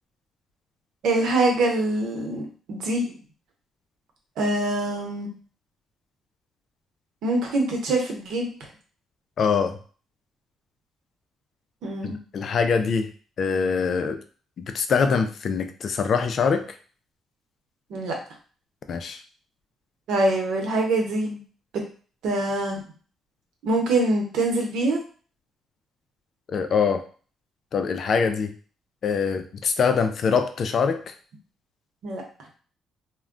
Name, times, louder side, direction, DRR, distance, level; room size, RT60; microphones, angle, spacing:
voice 1, 1.0-3.1 4.4-5.3 7.2-8.5 11.8-12.1 17.9-18.2 20.1-21.4 22.2-22.8 23.6-25.0 32.0-32.2, right 2 dB, 80° right, 1 dB, 0.8 m, -24 dB
voice 2, 9.4-9.8 12.0-13.1 13.4-14.2 14.6-16.8 18.9-19.2 26.5-27.0 27.7-28.5 29.0-31.1, left 5 dB, 55° left, 8 dB, 0.4 m, -24 dB
2.2 x 2.1 x 3.7 m, 0.41 s
cardioid pair, 90°, 0 cm